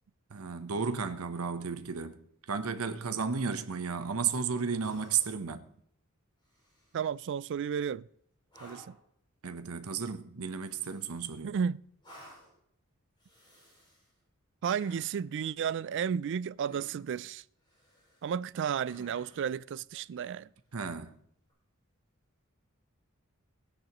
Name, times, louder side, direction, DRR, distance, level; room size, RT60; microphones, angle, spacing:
voice 1, 0.3-2.2 2.5-5.6 9.4-11.5 20.7-21.1, right 6 dB, 80° right, 0.9 m, -33 dB
sound 1, 2.9-3.6 4.8-5.5 6.4-7.2 8.5-9.1 10.6-11.4 12.0-12.6 13.2-14.1 14.6-15.2 16.6-17.2 17.6-18.3 18.8-19.6 21.4-21.5, equal, 20° left, 6.0 m, -56 dB
voice 2, 6.9-8.1 8.6-9.0 11.4-11.8 14.6-17.4 18.2-20.5, right 7 dB, 55° right, 0.3 m, -33 dB
17.0 x 10.0 x 3.0 m
head